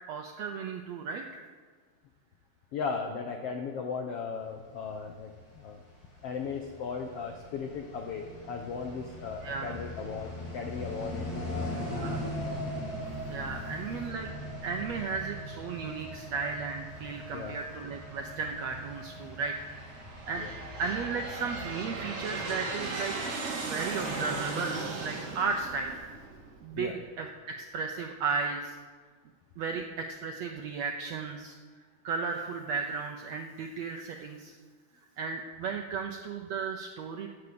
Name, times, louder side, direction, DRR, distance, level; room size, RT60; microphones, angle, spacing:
voice 1, 0.1-1.4 9.4-9.8 11.8-12.2 13.3-14.3 14.6-20.4 20.8-23.2 23.6-25.9 26.6-28.8 29.6-31.6 32.0-34.6 35.2-37.3, right 5 dB, 80° right, 3 dB, 1.5 m, -35 dB
voice 2, 2.7-5.8 6.2-11.9 17.3-17.5 20.4-20.5 26.7-27.0, left 5 dB, 90° left, 4 dB, 1.3 m, -37 dB
sound 1, 5.4-22.0, left 1 dB, 70° left, 5.0 m, -40 dB
Aircraft, 18.0-18.6 19.3-26.8, right 3 dB, 45° right, 2.5 m, -37 dB
16.0 x 8.2 x 6.9 m, 1.5 s
omnidirectional pair, 4.1 m